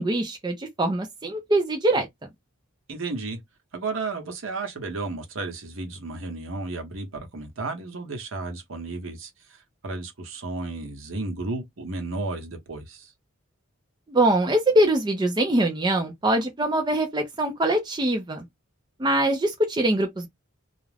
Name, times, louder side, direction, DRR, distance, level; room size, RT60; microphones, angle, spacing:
voice 1, 0.0-2.1 14.1-18.4 19.0-20.3, right 1 dB, 20° right, 0.5 m, -23 dB
voice 2, 2.9-3.4 3.7-13.1, right 3 dB, 65° right, 0.8 m, -33 dB
2.4 x 2.1 x 3.2 m
head